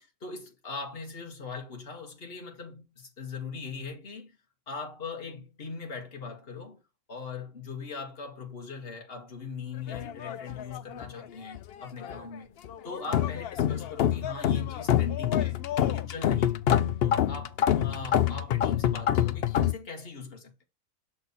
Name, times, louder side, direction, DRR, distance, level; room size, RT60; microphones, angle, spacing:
voice 1, 0.2-4.4 4.7-6.8 7.1-12.5 12.8-16.6 17.0-20.6, left 4 dB, 40° left, 1.7 m, -40 dB
sound 1, 9.9-11.2 11.5-12.2 12.6-19.7, left 10 dB, 80° left, 0.5 m, -27 dB
6.8 x 4.1 x 4.0 m
omnidirectional pair, 1.6 m